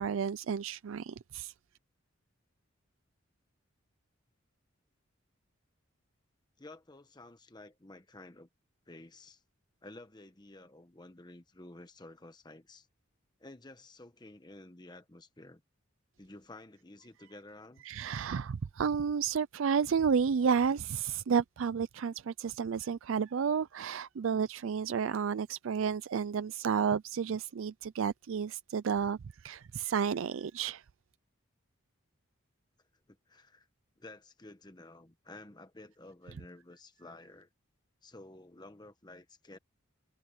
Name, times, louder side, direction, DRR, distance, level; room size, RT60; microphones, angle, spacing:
voice 1, 0.0-1.5 17.8-30.8, right 6 dB, 75° right, 0.4 m, -31 dB
voice 2, 6.6-8.5 8.9-9.4 9.8-12.9 13.4-15.6 16.2-17.8 33.1-33.7 34.0-37.5 38.0-39.6, left 2 dB, 20° left, 1.1 m, -52 dB
head